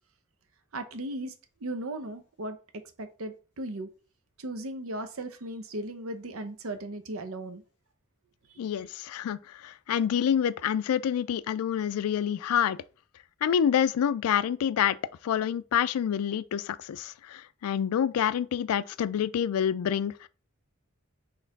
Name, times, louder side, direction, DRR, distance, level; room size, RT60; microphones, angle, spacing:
voice 1, 0.7-1.3 1.6-3.9 4.4-7.6 8.8-8.9, right 1 dB, 70° right, 0.7 m, -37 dB
voice 2, 8.6-12.8 13.4-15.0 15.2-20.3, left 9 dB, 80° left, 0.3 m, -27 dB
4.2 x 3.2 x 4.0 m
head